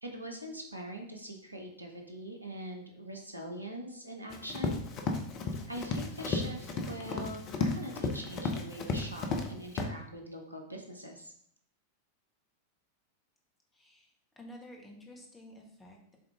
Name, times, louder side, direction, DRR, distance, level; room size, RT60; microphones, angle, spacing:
voice 1, 0.0-4.8 5.7-11.3, equal, 85° right, 2 dB, 1.0 m, -42 dB
Run, 4.3-9.5 9.8-9.9, left 3 dB, 35° left, 0.9 m, -34 dB
voice 2, 13.7-16.2, equal, 15° left, 0 dB, 1.6 m, -51 dB
7.5 x 3.9 x 3.6 m, 0.64 s
figure-of-eight pair, 90°, 0 cm